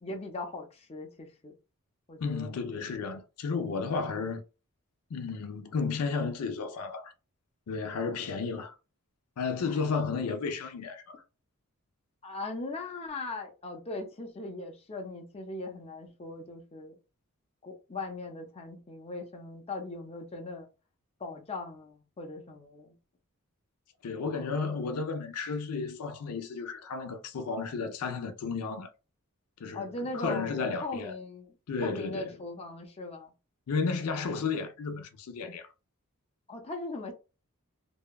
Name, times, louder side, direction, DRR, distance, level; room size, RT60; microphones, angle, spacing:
voice 1, 0.0-1.5 2.1-2.5 9.6-9.8 10.2-10.3 12.2-17.0 17.6-20.7 21.2-23.0 29.7-31.5 31.8-33.3 36.5-37.1, left 2 dB, 25° left, 0.6 m, -39 dB
voice 2, 2.2-4.4 5.1-7.1 7.7-8.8 9.4-11.2 24.0-28.9 29.6-31.1 31.7-32.3 33.7-35.7, left 4 dB, 85° left, 0.5 m, -33 dB
2.7 x 2.2 x 2.2 m
head